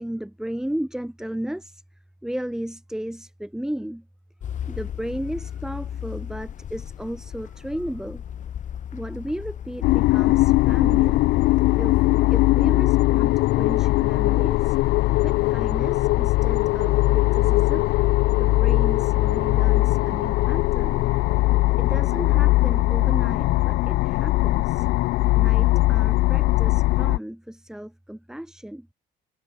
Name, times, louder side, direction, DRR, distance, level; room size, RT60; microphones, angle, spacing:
voice 1, 0.0-1.8 2.2-4.1 4.7-8.2 8.9-11.3 11.7-14.8 15.2-17.9 18.4-21.1 21.8-24.9 25.3-28.9, right 1 dB, 5° right, 7.6 m, -34 dB
sound 1, 4.4-12.5, left 9 dB, 50° left, 1.9 m, -37 dB
sound 2, 9.8-27.2, left 19 dB, 75° left, 0.4 m, -20 dB
cardioid pair, 110°, 17 cm